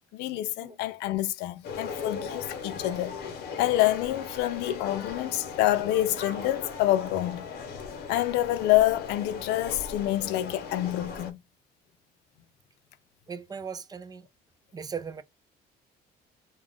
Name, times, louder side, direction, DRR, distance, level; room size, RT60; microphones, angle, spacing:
voice 1, 0.1-3.2 3.6-7.5 8.1-11.4, left 15 dB, 90° left, 0.4 m, -27 dB
sound 1, 1.6-11.3, left 5 dB, 70° left, 0.8 m, -38 dB
voice 2, 13.3-14.3 14.7-15.2, right 6 dB, 25° right, 0.4 m, -38 dB
2.3 x 2.2 x 3.4 m
cardioid pair, 110°, 17 cm